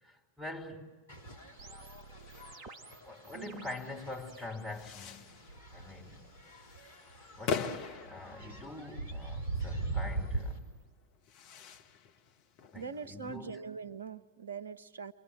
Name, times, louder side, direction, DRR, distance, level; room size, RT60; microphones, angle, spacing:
voice 1, 0.0-0.9 3.0-5.3 5.7-6.2 7.3-10.6 12.7-13.6, left 2 dB, ahead, 3.0 m, -45 dB
sound 1, 1.1-10.6, right 3 dB, 70° left, 3.7 m, -42 dB
sound 2, 1.6-4.8 5.1-5.7 6.7-10.8, right 4 dB, 35° right, 1.2 m, -57 dB
sound 3, 2.1-13.4, left 6 dB, 45° left, 1.1 m, -44 dB
voice 2, 3.3-3.7 12.7-15.1, right 6 dB, 70° right, 0.8 m, -43 dB
28.5 x 23.5 x 6.1 m
figure-of-eight pair, 90°, 0 cm